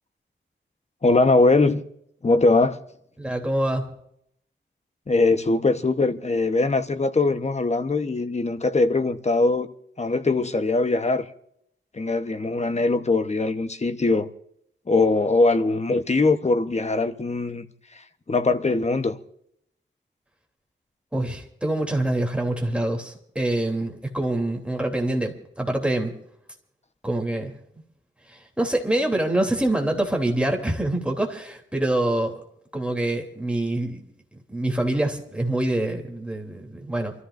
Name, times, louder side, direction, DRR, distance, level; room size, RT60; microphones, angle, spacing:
voice 1, 1.0-1.8 2.2-2.8 5.1-9.7 10.0-11.3 11.9-14.3 14.9-17.7 18.3-19.2, left 3 dB, 35° left, 1.0 m, -21 dB
voice 2, 3.2-3.8 21.1-26.1 27.0-27.5 28.3-32.3 32.7-34.0 34.5-37.1, right 1 dB, 5° right, 3.1 m, -25 dB
29.0 x 14.0 x 2.6 m
wide cardioid pair, 90°, 20 cm